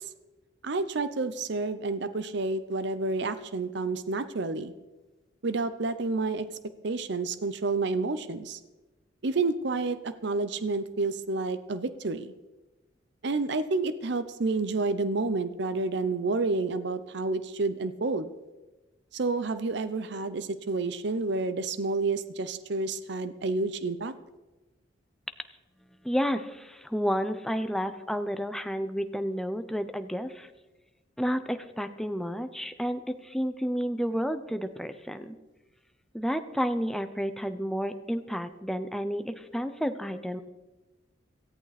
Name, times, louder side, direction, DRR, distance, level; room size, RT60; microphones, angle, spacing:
voice 1, 0.6-4.7 5.4-6.5 6.8-8.6 9.2-12.3 13.2-18.3 19.1-24.1, right 3 dB, 65° right, 13 dB, 0.7 m, -29 dB
voice 2, 26.0-30.5 31.2-35.4 36.1-40.4, equal, ahead, 9 dB, 0.7 m, -31 dB
18.0 x 14.0 x 4.2 m, 1.1 s
head